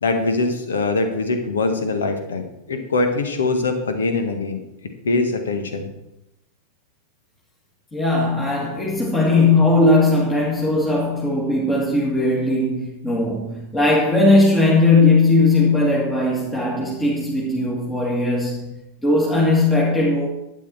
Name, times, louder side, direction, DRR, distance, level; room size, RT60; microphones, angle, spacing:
voice 1, 0.0-4.6 5.0-5.9, left 3 dB, 65° left, 1.7 m, -22 dB
voice 2, 7.9-20.3, left 2 dB, 15° left, 2.1 m, -18 dB
12.0 x 9.3 x 4.4 m
figure-of-eight pair, 90°, 0 cm